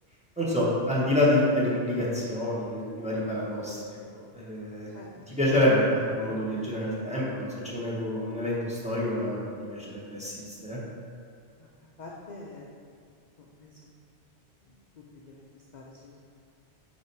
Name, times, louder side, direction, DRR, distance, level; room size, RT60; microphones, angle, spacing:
voice 1, 0.4-4.0 4.3-4.9 5.3-10.8, left 1 dB, 5° right, -7 dB, 1.3 m, -27 dB
voice 2, 12.0-12.7 13.6-13.7 15.2-15.5 15.7-16.2, left 3 dB, 50° left, -2 dB, 0.6 m, -45 dB
5.8 x 5.0 x 4.7 m, 2.3 s
omnidirectional pair, 1.2 m